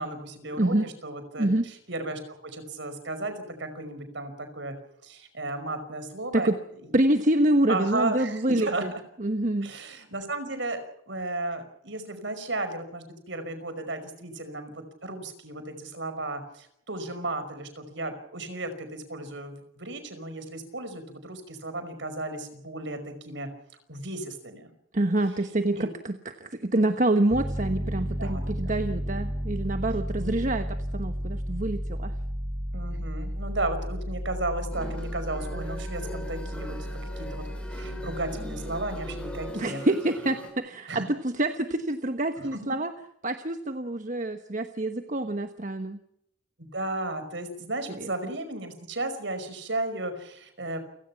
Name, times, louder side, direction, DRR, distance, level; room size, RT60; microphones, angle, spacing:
voice 1, 0.0-4.8 5.0-6.5 6.8-6.9 7.7-9.0 9.6-10.8 11.1-23.5 23.9-24.7 25.8-25.9 28.2-28.4 30.2-30.4 32.7-37.4 37.7-39.8 40.9-41.1 42.5-42.6 46.6-50.8, right 2 dB, 60° right, 10 dB, 5.4 m, -34 dB
voice 2, 0.6-0.9 1.4-1.6 6.3-6.6 6.9-8.7 9.2-9.7 24.9-30.7 30.9-32.1 39.5-42.9 43.2-46.0 48.0-48.1, right 1 dB, 40° right, 8 dB, 1.2 m, -26 dB
Piano, 27.3-39.5, equal, 15° right, 1.9 m, -33 dB
sound 1, 34.7-40.5, equal, 5° left, 6.2 m, -41 dB
29.5 x 17.5 x 5.9 m, 0.75 s
head